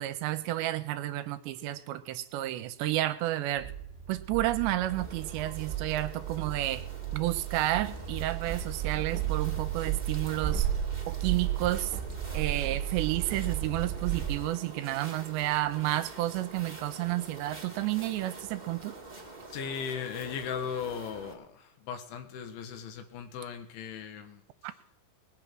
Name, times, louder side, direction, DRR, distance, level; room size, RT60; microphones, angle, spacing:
voice 1, 0.0-3.7 4.1-6.8 7.1-10.7 11.1-11.9 12.3-19.0, right 15 dB, 80° right, 12 dB, 2.8 m, -31 dB
sound 1, 3.6-14.4, right 11 dB, 40° right, 1.4 m, -34 dB
sound 2, 4.9-21.3, right 2 dB, 25° right, 0.9 m, -47 dB
voice 2, 19.5-24.4, left 7 dB, 85° left, 7 dB, 3.9 m, -37 dB
20.0 x 8.4 x 6.1 m, 0.73 s
omnidirectional pair, 5.3 m